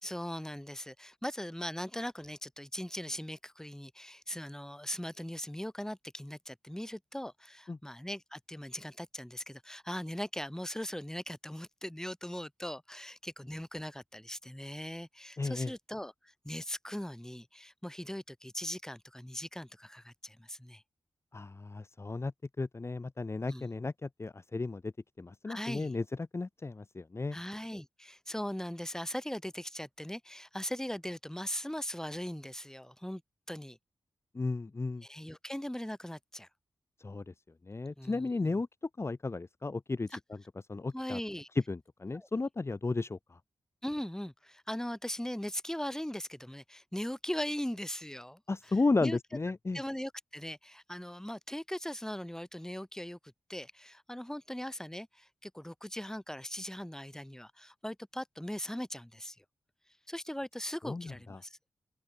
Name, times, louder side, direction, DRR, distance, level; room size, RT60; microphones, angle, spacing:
voice 1, 0.0-16.1 16.4-20.8 23.5-23.7 25.5-25.9 27.3-33.2 33.5-33.8 35.0-36.5 38.0-38.6 40.9-41.5 42.1-42.3 43.8-48.4 49.0-49.2 49.7-53.2 53.5-59.4 60.1-61.6, equal, 5° left, 3.7 m, -39 dB
voice 2, 15.4-15.7 21.3-22.3 22.6-24.9 25.2-26.0 26.3-27.4 34.3-35.0 37.0-37.3 37.7-38.7 39.0-40.2 40.7-41.2 41.7-43.4 48.5-49.8 60.8-61.4, left 3 dB, 35° left, 1.0 m, -34 dB
open air
cardioid pair, 50°, 8 cm